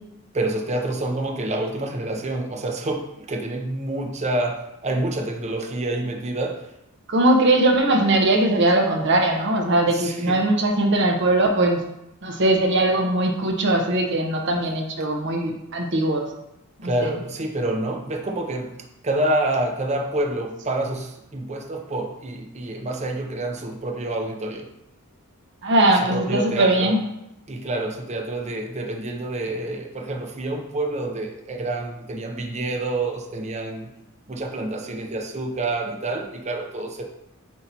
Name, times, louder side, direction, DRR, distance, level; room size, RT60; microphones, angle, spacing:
voice 1, 0.3-6.6 9.9-10.4 16.8-18.8 19.0-24.7 26.1-27.0 27.5-33.9 34.3-37.0, right 2 dB, 30° right, 3 dB, 0.6 m, -27 dB
voice 2, 7.1-11.8 12.2-16.3 16.8-17.1 25.6-27.0, right 1 dB, 60° right, 2 dB, 0.9 m, -20 dB
8.3 x 2.9 x 4.0 m, 0.85 s
head